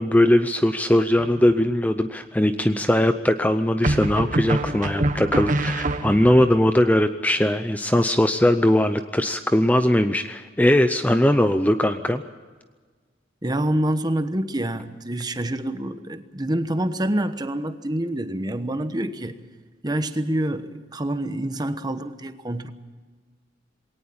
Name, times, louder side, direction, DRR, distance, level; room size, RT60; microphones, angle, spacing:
voice 1, 0.0-12.2, left 1 dB, 10° left, 9 dB, 0.6 m, -20 dB
sound 1, 1.2-1.8 3.8-6.5, right 1 dB, 40° right, 1.2 m, -25 dB
voice 2, 13.4-19.4 19.8-22.7, right 1 dB, 20° right, 10 dB, 1.1 m, -26 dB
21.5 x 18.5 x 8.7 m, 1.5 s
head